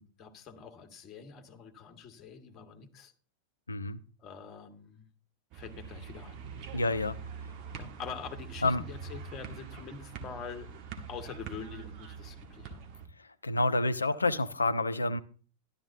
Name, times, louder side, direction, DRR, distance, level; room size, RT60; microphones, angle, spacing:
voice 1, 0.0-3.1 4.2-5.1 5.5-6.4 6.7-7.0 7.7-10.7 11.1-12.8, left 6 dB, 30° left, 6 dB, 1.7 m, -45 dB
voice 2, 3.7-4.0 6.7-7.2 8.6-8.8 13.4-15.2, left 2 dB, 80° left, 14 dB, 0.7 m, -28 dB
sound 1, 5.5-13.1, right 6 dB, 40° right, 1.5 m, -44 dB
12.5 x 12.0 x 2.7 m, 0.40 s
figure-of-eight pair, 90°, 0 cm